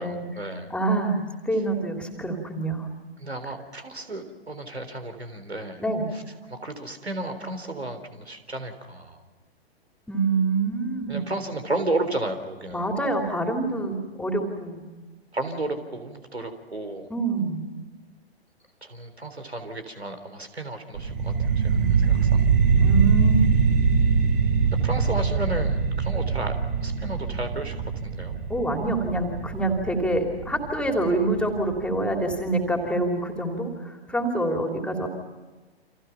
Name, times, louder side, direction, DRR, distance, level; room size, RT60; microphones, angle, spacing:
voice 1, 0.0-0.7 3.2-5.8 6.1-6.2 6.5-9.2 11.1-12.9 15.3-17.1 18.8-22.4 24.8-26.5 26.8-27.7 28.0-28.4, right 2 dB, 80° right, 8 dB, 3.7 m, -33 dB
voice 2, 0.7-2.9 5.8-6.0 10.1-11.3 12.7-14.8 17.1-17.6 21.7-22.3 22.8-23.5 28.5-35.1, right 2 dB, 5° left, 3 dB, 3.2 m, -26 dB
sound 1, 20.9-32.0, right 5 dB, 55° right, 7.9 m, -23 dB
30.0 x 26.5 x 5.8 m, 1.2 s
figure-of-eight pair, 115°, 32 cm